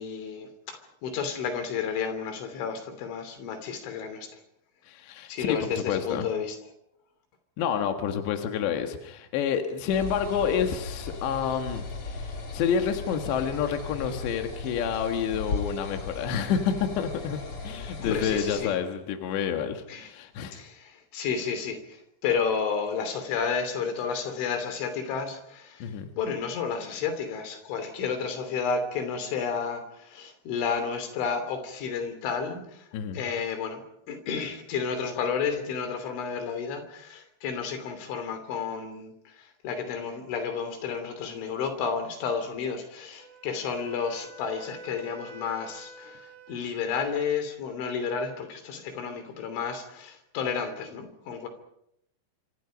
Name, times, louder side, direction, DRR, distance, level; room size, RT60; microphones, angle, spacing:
voice 1, 0.0-4.4 5.3-6.6 18.0-18.8 19.9-20.1 20.5-32.9 33.1-51.5, left 6 dB, 90° left, 8 dB, 5.4 m, -31 dB
voice 2, 4.9-5.6 5.9-6.3 7.6-17.4 17.6-20.6 25.8-26.1 32.9-33.2, left 7 dB, 75° left, 5 dB, 3.8 m, -29 dB
sound 1, 9.9-18.6, left 3 dB, 35° left, 3.1 m, -37 dB
Wind instrument woodwind instrument, 43.2-47.2, right 1 dB, 80° right, 6.0 m, -47 dB
27.5 x 26.0 x 5.3 m, 0.77 s
omnidirectional pair, 5.3 m